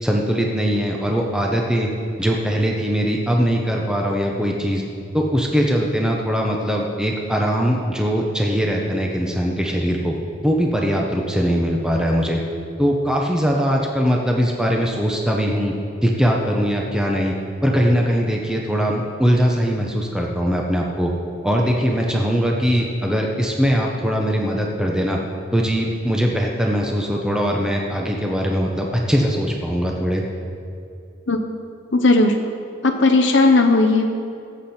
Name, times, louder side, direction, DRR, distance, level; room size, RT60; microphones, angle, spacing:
voice 1, 0.0-1.9 2.2-4.8 5.1-10.2 10.4-12.4 12.8-15.7 16.0-17.3 17.6-21.1 21.4-25.2 25.5-30.2, equal, 5° right, -1 dB, 0.8 m, -21 dB
voice 2, 31.9-32.4 32.8-34.1, left 2 dB, 65° left, 3 dB, 0.7 m, -15 dB
18.0 x 8.1 x 4.4 m, 2.5 s
head